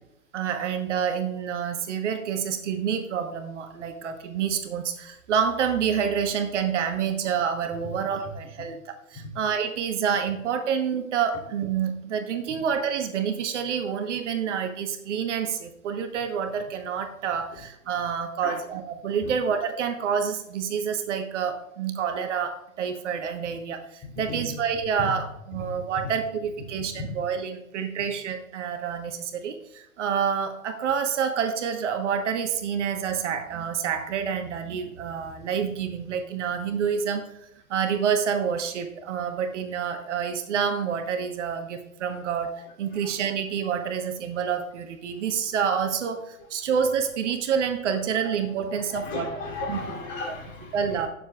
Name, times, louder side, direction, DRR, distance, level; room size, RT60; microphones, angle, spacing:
voice 1, 0.3-49.3 49.6-49.8 50.3-50.4 50.7-51.1, right 7 dB, 55° right, 7 dB, 1.2 m, -28 dB
voice 2, 48.9-50.8, left 3 dB, 25° left, -1 dB, 2.9 m, -35 dB
18.5 x 6.9 x 2.4 m, 0.86 s
hypercardioid pair, 125°, 43 cm